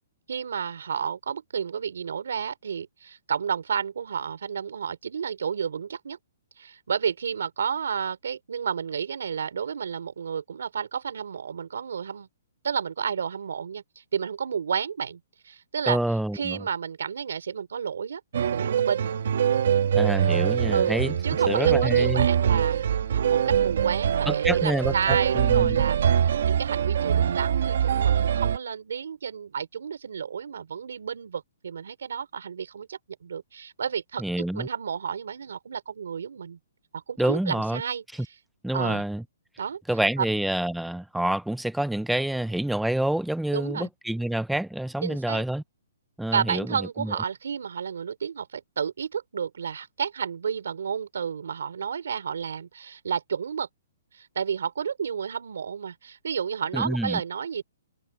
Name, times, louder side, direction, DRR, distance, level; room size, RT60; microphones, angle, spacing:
voice 1, 0.3-6.2 6.6-12.3 12.6-16.0 16.3-18.2 18.5-19.1 20.7-34.2 34.5-36.6 36.9-38.0 38.7-39.0 39.6-39.8 40.2-40.3 43.5-43.9 45.0-45.4 46.3-53.7 54.1-57.6, right 7 dB, 75° right, 3.9 m, -31 dB
voice 2, 15.9-16.6 19.9-21.2 21.5-22.3 24.3-25.8 34.2-34.7 37.2-37.8 38.6-39.2 39.9-45.6 46.2-47.1 56.7-57.2, right 1 dB, ahead, 0.5 m, -27 dB
sound 1, 18.3-28.6, right 8 dB, 50° right, 1.5 m, -23 dB
hypercardioid pair, 180°, 0 cm